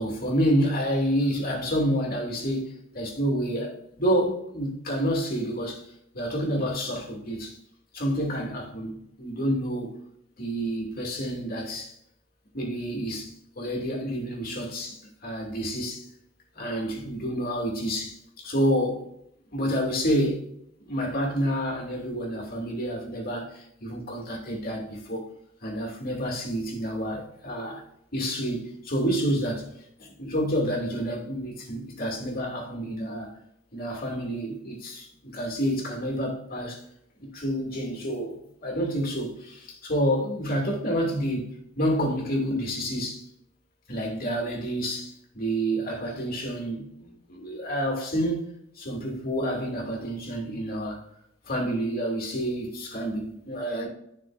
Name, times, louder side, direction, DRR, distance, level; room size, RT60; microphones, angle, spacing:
voice 1, 0.0-5.9 6.1-7.6 7.9-10.0 10.4-11.9 12.5-16.1 16.5-19.1 19.5-20.5 20.8-25.3 25.6-27.8 28.1-29.7 30.0-33.3 33.7-36.8 37.2-41.5 41.8-43.3 43.9-48.5 48.7-51.0 51.4-53.9, equal, 50° left, 2.7 m, -29 dB
11.0 x 6.1 x 2.6 m
head